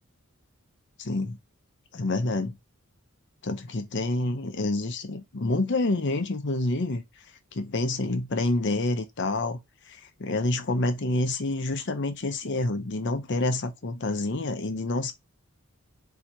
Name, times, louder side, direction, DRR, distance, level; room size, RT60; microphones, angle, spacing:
voice 1, 1.0-1.4 1.9-2.6 3.4-7.0 7.5-9.6 9.9-15.1, left 2 dB, 55° left, 0.7 m, -28 dB
3.9 x 2.9 x 4.3 m
head